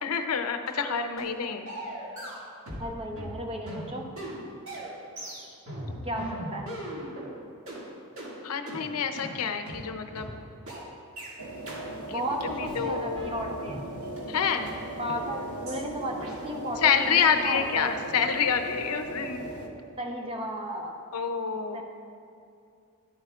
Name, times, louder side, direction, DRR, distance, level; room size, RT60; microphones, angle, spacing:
voice 1, 0.0-1.7 8.4-10.3 12.1-12.2 12.5-13.4 14.3-14.7 16.8-19.5 21.1-21.8, left 6 dB, 80° left, 7 dB, 0.6 m, -27 dB
sound 1, 0.7-0.8 1.2-1.4 1.7-2.9 3.1-7.3 7.7-7.8 8.2-8.3 8.7-8.8 9.2-9.3 9.7-9.8 10.2-10.3 10.7-10.8 11.2-11.3 11.7-11.8 12.2-12.3 12.6-13.8 14.2-14.3 14.7-14.8 15.2-15.3 15.7-15.8 16.2-16.3, right 1 dB, 60° right, 2.1 m, -39 dB
voice 2, 2.8-4.1 6.0-6.7 12.1-13.8 15.0-17.9 20.0-21.0 21.7-21.8, equal, 25° right, 2 dB, 0.7 m, -34 dB
sound 2, 11.4-19.7, right 1 dB, 80° right, 0.9 m, -38 dB
11.5 x 7.9 x 2.4 m, 2.6 s
head